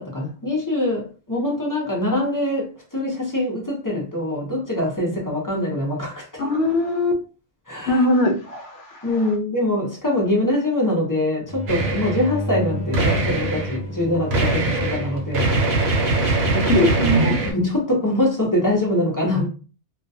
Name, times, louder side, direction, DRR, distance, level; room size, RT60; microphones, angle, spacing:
voice 1, 0.0-6.4 7.7-8.0 9.0-15.5 16.3-16.4 17.4-19.5, left 1 dB, 20° left, 0.6 m, -23 dB
voice 2, 6.4-7.2 7.9-9.1 16.5-17.4, left 1 dB, 70° left, 0.9 m, -20 dB
sound 1, 11.5-16.8, equal, 90° right, 1.1 m, -32 dB
sound 2, 11.7-12.3 12.9-13.8 14.3-17.5, right 2 dB, 65° right, 0.9 m, -22 dB
2.3 x 2.2 x 2.6 m
omnidirectional pair, 1.2 m